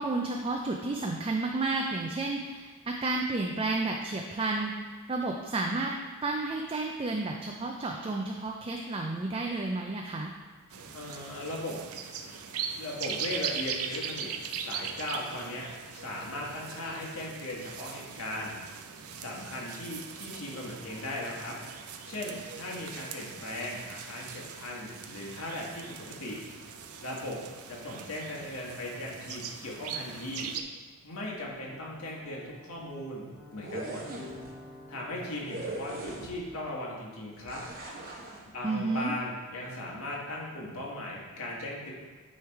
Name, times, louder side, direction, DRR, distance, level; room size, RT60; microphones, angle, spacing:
voice 1, 0.0-5.9 6.2-10.3 38.6-39.2, right 3 dB, 25° right, 1 dB, 0.4 m, -31 dB
sound 1, 10.7-30.6, right 7 dB, 85° right, 0.5 m, -40 dB
voice 2, 10.9-11.8 12.7-14.3 14.6-18.6 19.2-21.5 22.0-26.4 27.0-27.4 27.7-30.5 31.0-34.0 34.9-37.6 38.4-41.9, left 1 dB, 80° left, -3 dB, 1.6 m, -38 dB
sound 2, 31.4-36.7, left 1 dB, 10° left, 1.6 m, -50 dB
sound 3, 33.5-34.5 35.5-36.6 37.5-38.4, right 2 dB, 40° right, 1.0 m, -40 dB
9.3 x 3.3 x 4.6 m, 1.4 s
head